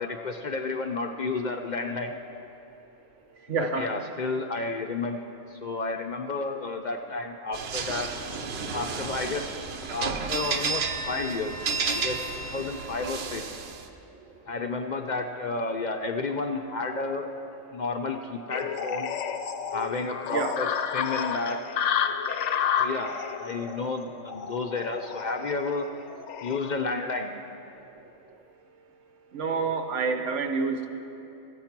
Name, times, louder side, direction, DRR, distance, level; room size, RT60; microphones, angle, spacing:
voice 1, 0.0-2.2 3.6-5.2 5.5-8.1 8.7-9.5 9.8-13.5 14.5-17.3 17.7-19.1 19.7-21.6 22.7-25.9 26.4-27.3, left 3 dB, 55° left, 4 dB, 0.5 m, -31 dB
voice 2, 3.5-4.0 20.3-20.6 29.3-30.9, right 4 dB, 90° right, 6 dB, 1.1 m, -28 dB
sound 1, 7.5-13.8, right 4 dB, 60° right, 0.9 m, -32 dB
sound 2, 18.5-26.7, left 8 dB, 80° left, 0.9 m, -31 dB
14.0 x 8.4 x 5.9 m, 2.9 s
omnidirectional pair, 1.2 m